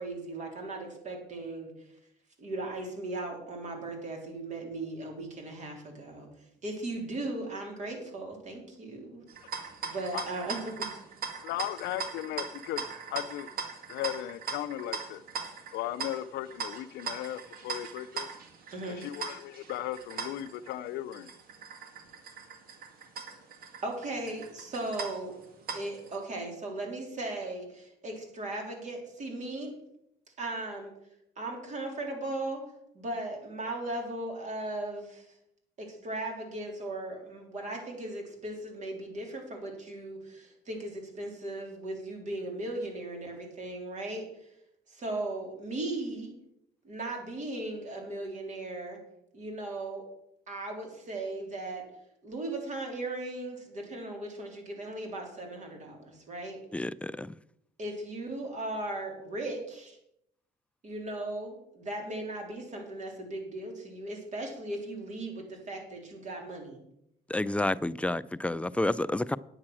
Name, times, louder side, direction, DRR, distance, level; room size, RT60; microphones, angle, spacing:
voice 1, 0.0-1.7 2.4-6.3 6.6-9.2 9.8-10.9 18.7-19.0 23.8-25.4 25.7-29.7 30.4-30.9 31.4-32.6 32.9-35.3 35.8-44.5 44.9-46.3 46.8-49.0 49.3-50.1 50.5-51.9 52.2-56.6 57.8-60.0 60.8-66.8, right 2 dB, 45° right, 3.8 m, -37 dB
sound 1, 9.3-26.2, right 5 dB, 60° right, 2.1 m, -40 dB
voice 2, 11.4-12.8 13.1-13.5 13.9-15.2 15.7-18.3 18.9-21.3, left 13 dB, 80° left, 0.6 m, -36 dB
voice 3, 56.7-57.3 67.3-69.4, left 1 dB, 5° left, 0.3 m, -30 dB
9.7 x 8.8 x 6.2 m
cardioid pair, 110°, 17 cm